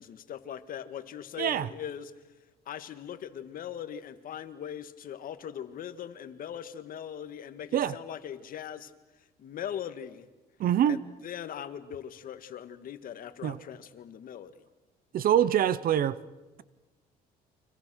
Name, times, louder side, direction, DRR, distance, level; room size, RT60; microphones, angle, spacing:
voice 1, 0.0-2.1 2.7-8.9 9.4-10.3 10.9-14.6, left 9 dB, 55° left, 1.9 m, -40 dB
voice 2, 10.6-11.0 13.4-13.6 15.1-16.2, right 10 dB, 60° right, 1.0 m, -24 dB
30.0 x 25.5 x 6.4 m
cardioid pair, 110°, 17 cm